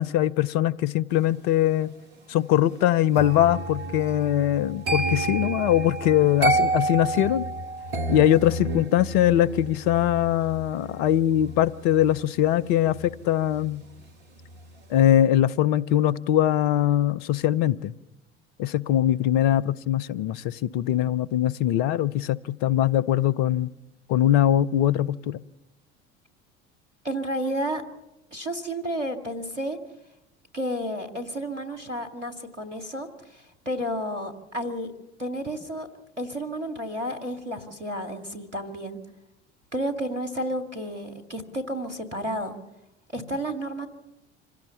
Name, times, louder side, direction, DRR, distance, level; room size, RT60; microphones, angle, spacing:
voice 1, 0.0-1.9 2.3-7.5 8.1-13.8 14.9-17.9 18.6-23.7 24.1-25.4, left 12 dB, 55° left, 0.8 m, -22 dB
sound 1, 3.1-14.1 14.4-14.8, right 2 dB, 70° right, 1.9 m, -30 dB
voice 2, 27.0-27.8 28.3-29.8 30.5-34.9 35.2-35.9 36.2-39.0 39.7-42.5 43.1-43.9, equal, 90° right, 2.1 m, -31 dB
26.0 x 16.5 x 7.0 m
figure-of-eight pair, 65°, 35 cm